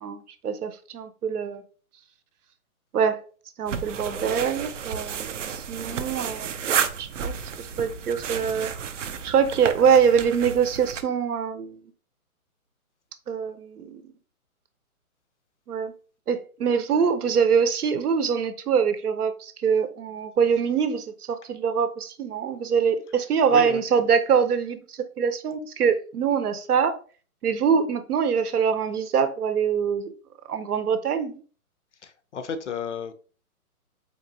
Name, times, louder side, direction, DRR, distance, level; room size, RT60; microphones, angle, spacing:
voice 1, 0.0-1.6 2.9-3.2 3.6-6.5 7.0-8.7 9.2-11.8 13.3-14.1 15.7-15.9 16.3-27.0 27.4-30.1 30.5-31.4, right 7 dB, 85° right, 0.8 m, -24 dB
sound 1, 3.7-11.0, right 7 dB, 55° right, 0.5 m, -31 dB
voice 2, 23.5-23.8 32.0-33.1, left 5 dB, 55° left, 0.5 m, -32 dB
4.1 x 2.9 x 2.7 m
hypercardioid pair, 160°, 44 cm